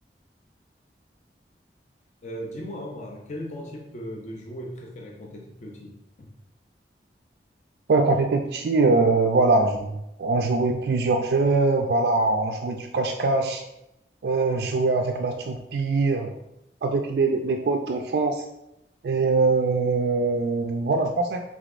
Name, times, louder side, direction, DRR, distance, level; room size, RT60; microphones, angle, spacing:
voice 1, 2.2-6.3, equal, 40° left, -1 dB, 0.5 m, -37 dB
voice 2, 7.9-9.9 10.2-13.6 14.2-16.3 16.8-18.4 19.0-21.4, right 3 dB, 65° right, 4 dB, 0.3 m, -22 dB
5.0 x 3.6 x 2.5 m, 0.86 s
head